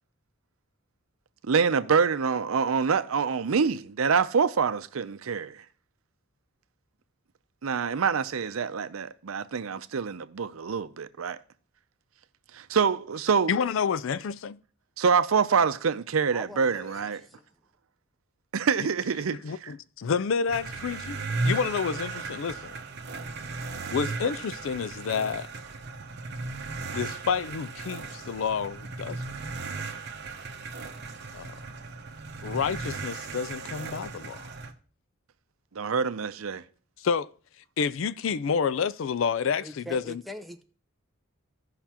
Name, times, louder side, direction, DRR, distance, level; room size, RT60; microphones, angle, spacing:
voice 1, 1.5-5.6 7.6-11.4 12.5-13.5 15.0-17.2 18.5-19.7 35.8-36.6, right 6 dB, 85° right, 0.6 m, -26 dB
voice 2, 13.5-14.6 19.4-22.7 23.9-25.5 26.9-29.2 31.3-31.5 32.4-34.5 37.0-37.3 37.8-40.2, left 6 dB, 65° left, 0.4 m, -29 dB
voice 3, 16.3-17.4 39.6-40.6, equal, ahead, 0.7 m, -42 dB
sound 1, 20.5-34.7, right 3 dB, 55° right, 0.9 m, -36 dB
16.0 x 5.8 x 2.9 m
head